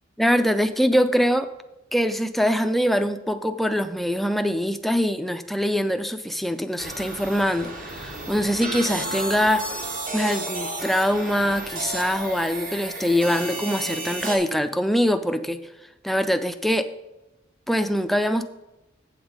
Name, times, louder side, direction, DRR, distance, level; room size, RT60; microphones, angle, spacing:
voice 1, 0.2-1.5 1.9-9.6 10.1-15.6 16.0-16.9 17.7-18.5, equal, ahead, 9 dB, 0.4 m, -23 dB
sound 1, 6.8-14.4, right 2 dB, 45° right, 1.3 m, -32 dB
8.0 x 6.9 x 5.1 m, 0.97 s
head